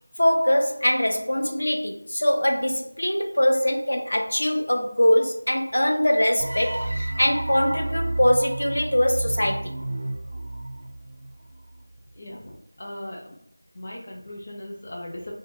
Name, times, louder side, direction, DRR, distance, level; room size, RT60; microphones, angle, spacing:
voice 1, 0.2-9.7, left 1 dB, 85° left, 0.5 m, -22 dB
sound 1, 6.4-11.5, right 2 dB, 40° right, 0.4 m, -31 dB
voice 2, 12.1-13.4 13.7-15.3, left 1 dB, 35° left, 0.6 m, -38 dB
2.6 x 2.1 x 3.2 m
figure-of-eight pair, 175°, 0 cm